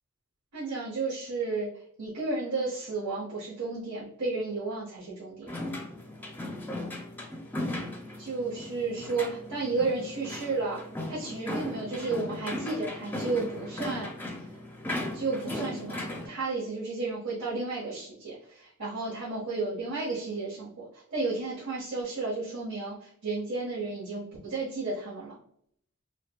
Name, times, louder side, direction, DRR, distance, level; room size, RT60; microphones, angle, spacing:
voice 1, 0.5-1.7 2.0-5.5 8.2-10.8 11.1-14.1 15.1-25.3, right 3 dB, 85° right, -8 dB, 1.3 m, -32 dB
sound 1, 5.5-16.3, left 1 dB, 10° left, 0.5 m, -37 dB
4.8 x 2.2 x 2.2 m, 0.67 s
head